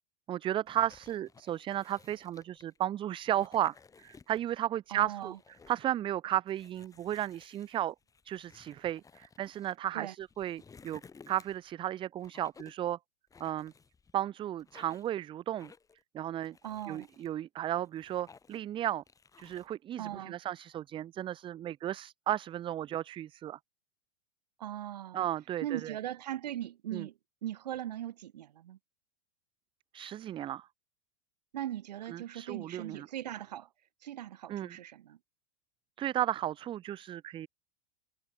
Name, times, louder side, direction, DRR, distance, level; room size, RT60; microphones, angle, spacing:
voice 1, 0.3-5.3 5.7-7.9 8.2-11.0 11.3-13.0 13.4-13.7 14.1-15.7 16.1-16.6 16.9-19.0 19.4-23.6 25.1-25.9 26.9-27.1 29.9-30.7 32.1-33.1 34.5-34.7 36.0-37.5, right 12 dB, 25° right, 0.5 m, -34 dB
sound 1, 0.7-2.8 3.2-4.6 4.9-5.9 6.5-9.8 10.2-11.7 12.2-12.9 13.3-14.2 14.6-15.1 15.6-16.0 16.4-17.3 17.7-18.7 19.1-19.7, left 5 dB, 15° left, 2.5 m, -58 dB
voice 2, 4.9-5.4 9.9-10.1 16.6-17.1 20.0-20.4 24.6-25.3 25.6-27.1 27.4-28.8 31.5-33.7 34.0-35.2, right 12 dB, 75° right, 0.9 m, -39 dB
hypercardioid pair, 100°, 21 cm